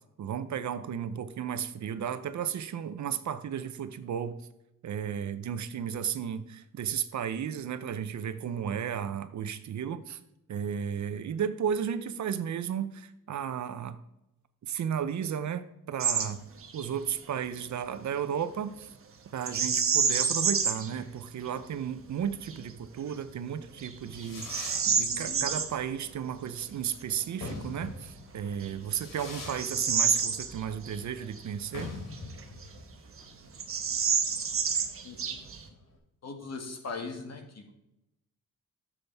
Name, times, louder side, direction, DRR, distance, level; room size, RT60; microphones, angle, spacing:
voice 1, 0.2-4.4 4.8-10.2 10.5-14.0 14.7-16.4 16.7-18.9 19.3-31.9, right 8 dB, 60° right, 11 dB, 0.7 m, -34 dB
Bird vocalization bird call bird song, 16.0-16.3 16.6-16.9 19.4-20.9 21.5-21.6 22.2-22.6 23.1-23.2 23.8-25.7 27.8-27.9 28.5-31.0 31.3-31.4 32.1-32.9 33.2-33.3 33.5-35.7, right 6 dB, 45° right, 1.1 m, -28 dB
Fireworks, 23.7-35.9, left 3 dB, 90° left, 2.8 m, -45 dB
voice 2, 25.1-25.5 35.0-35.4 36.2-37.7, left 4 dB, 55° left, 3 dB, 1.8 m, -40 dB
12.0 x 7.2 x 3.5 m, 0.87 s
wide cardioid pair, 145°, 32 cm